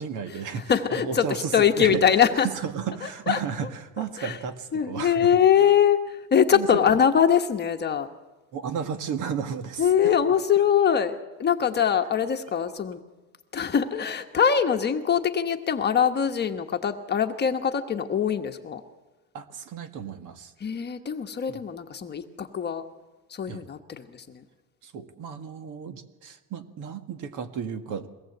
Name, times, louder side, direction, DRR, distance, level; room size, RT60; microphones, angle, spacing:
voice 1, 0.0-2.0 2.3-5.3 6.5-7.0 8.5-10.1 19.3-20.5 21.5-21.6 23.5-23.6 24.8-28.1, right 7 dB, 55° right, 8 dB, 1.8 m, -33 dB
voice 2, 0.7-2.5 3.0-3.4 4.2-4.4 4.7-8.1 9.8-13.0 13.5-18.8 20.6-22.8 23.3-24.4, left 8 dB, 25° left, 5 dB, 1.2 m, -23 dB
22.5 x 18.5 x 7.9 m, 1.2 s
cardioid pair, 160°, 37 cm